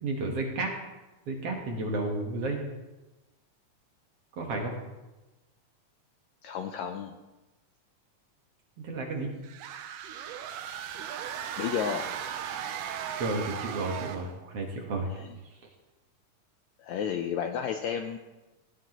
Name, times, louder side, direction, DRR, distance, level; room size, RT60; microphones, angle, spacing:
voice 1, 0.0-0.7 1.3-2.7 4.4-4.7 8.8-9.3 13.2-15.1, right 2 dB, 55° right, 1 dB, 2.0 m, -32 dB
voice 2, 6.4-7.1 11.6-12.1 15.1-15.4 16.8-18.2, left 8 dB, 80° left, 6 dB, 1.6 m, -32 dB
sound 1, 9.4-14.4, right 9 dB, 90° right, 2.3 m, -37 dB
17.5 x 10.5 x 3.0 m, 1.1 s
omnidirectional pair, 3.7 m